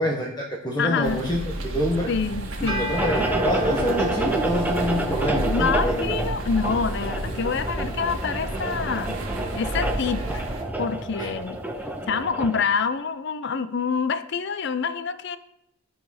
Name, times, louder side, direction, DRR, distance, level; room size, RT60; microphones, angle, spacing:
voice 1, 0.0-2.1 2.6-6.1 11.2-11.3, equal, 20° left, -2 dB, 1.1 m, -26 dB
voice 2, 0.8-1.2 2.1-2.9 5.5-9.2 9.5-10.5 10.8-11.6 12.1-15.4, left 5 dB, 55° left, 12 dB, 0.5 m, -26 dB
sound 1, 1.0-10.6, right 1 dB, 65° right, 1.7 m, -32 dB
sound 2, 2.7-11.9, right 1 dB, 25° right, 2.1 m, -38 dB
sound 3, 2.9-12.6, right 1 dB, 10° right, 0.7 m, -29 dB
13.0 x 5.0 x 5.7 m, 0.85 s
head